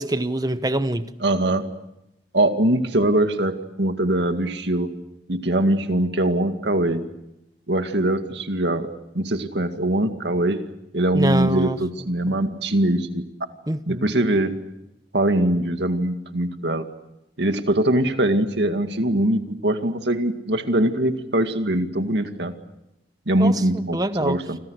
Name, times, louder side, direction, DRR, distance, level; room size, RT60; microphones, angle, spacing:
voice 1, 0.0-1.1 11.1-11.8 12.3-12.4 13.7-14.1 23.4-24.4, right 1 dB, 20° right, 1.0 m, -25 dB
voice 2, 1.2-1.6 2.3-4.9 5.3-7.0 7.7-8.9 9.1-10.6 10.9-13.2 13.9-14.6 15.1-16.9 17.4-22.5 23.3-24.6, right 1 dB, 70° right, 2.1 m, -22 dB
29.5 x 26.0 x 6.5 m
head